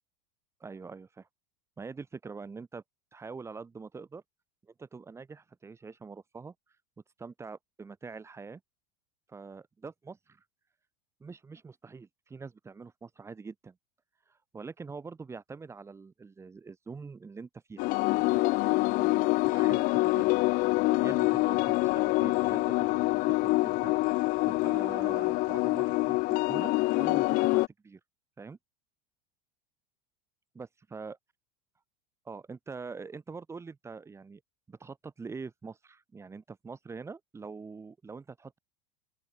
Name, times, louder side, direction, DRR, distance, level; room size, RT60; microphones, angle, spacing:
voice 1, 0.6-1.3 1.8-2.8 3.1-4.2 4.6-6.5 7.2-8.6 9.3-10.4 11.2-13.8 14.3-28.0 28.4-28.6 30.5-31.2 32.3-34.4 34.7-38.6, right 4 dB, 15° right, 3.5 m, -44 dB
sound 1, 17.8-27.7, left 22 dB, 50° left, 1.0 m, -26 dB
open air
supercardioid pair, 135°, 19 cm